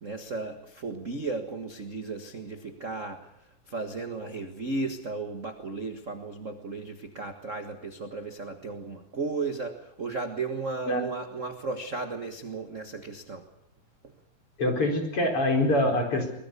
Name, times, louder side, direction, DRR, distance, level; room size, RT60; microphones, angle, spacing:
voice 1, 0.0-3.3 3.7-13.4, right 3 dB, 35° right, 6 dB, 1.2 m, -35 dB
voice 2, 14.6-16.3, left 1 dB, 45° left, 3 dB, 5.4 m, -24 dB
23.5 x 21.5 x 6.8 m, 0.76 s
omnidirectional pair, 3.7 m